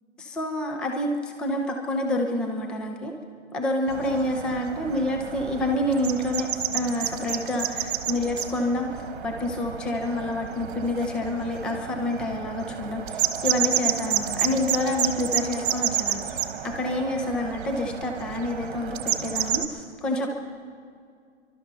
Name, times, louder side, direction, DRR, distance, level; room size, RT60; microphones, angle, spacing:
voice 1, 0.2-3.1 3.5-6.5 6.7-16.2 16.6-20.4, left 1 dB, 5° left, 3 dB, 0.4 m, -28 dB
sound 1, 3.9-19.7, right 9 dB, 45° right, 1.3 m, -30 dB
28.5 x 12.5 x 4.1 m, 2.2 s
figure-of-eight pair, 125°, 36 cm